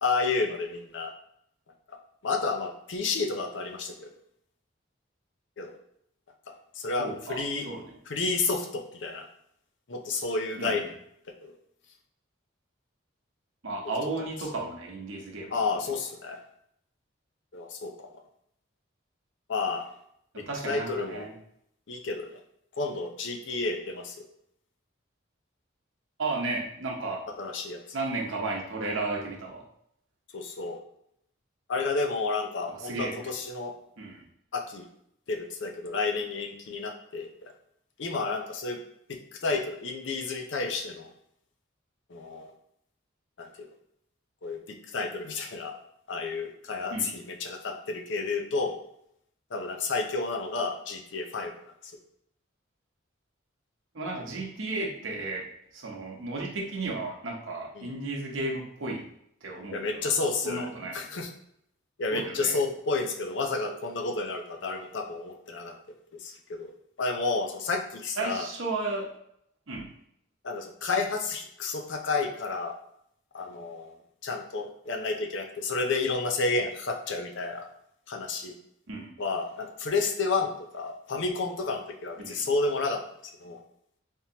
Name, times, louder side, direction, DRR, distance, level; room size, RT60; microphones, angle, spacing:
voice 1, 0.0-1.1 1.9-2.0 2.2-4.1 5.6-5.7 6.7-7.7 8.1-9.3 9.9-10.9 11.4-11.5 15.5-16.4 17.5-18.1 19.5-19.9 20.4-21.2 21.9-22.3 22.8-24.3 27.4-27.8 30.3-30.8 31.7-33.7 34.5-34.9 35.3-37.3 38.0-38.8 39.1-41.1 42.1-42.5 43.4-43.7 44.4-45.7 46.1-48.7 49.5-51.5 57.8-57.9 59.7-60.7 60.9-61.3 62.0-65.7 66.2-66.7 67.0-68.5 70.4-72.7 73.3-74.0 74.2-77.7 78.1-78.5 79.2-83.0 83.4-83.6, left 3 dB, 65° left, 4 dB, 0.5 m, -31 dB
voice 2, 7.0-7.8 10.6-10.9 13.6-15.5 20.3-21.4 26.2-27.2 27.9-29.6 32.7-33.3 34.0-34.2 46.9-47.1 53.9-55.5 55.7-59.1 59.4-60.1 60.4-61.0 62.1-62.5 68.2-69.1 69.7-69.9 78.9-79.1 82.2-82.4, right 2 dB, 80° right, -1 dB, 0.9 m, -34 dB
3.6 x 2.9 x 2.8 m, 0.72 s
head